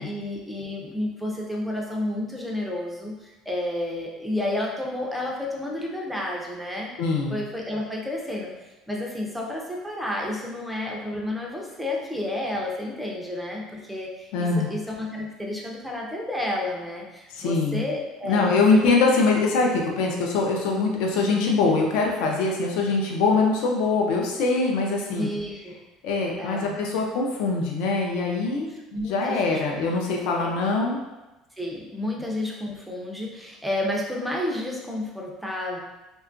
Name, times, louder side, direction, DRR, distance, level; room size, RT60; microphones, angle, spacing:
voice 1, 0.0-6.9 7.3-8.5 8.9-18.9 25.2-25.8 26.4-26.8 28.9-29.8 30.4-30.5 31.6-35.8, left 1 dB, ahead, -2 dB, 0.4 m, -31 dB
voice 2, 7.0-7.4 14.3-14.7 17.3-17.8 18.2-25.3 26.0-28.7 29.1-31.0, left 3 dB, 70° left, 0 dB, 0.4 m, -23 dB
2.8 x 2.2 x 2.5 m, 1.0 s
cardioid pair, 160°, 0 cm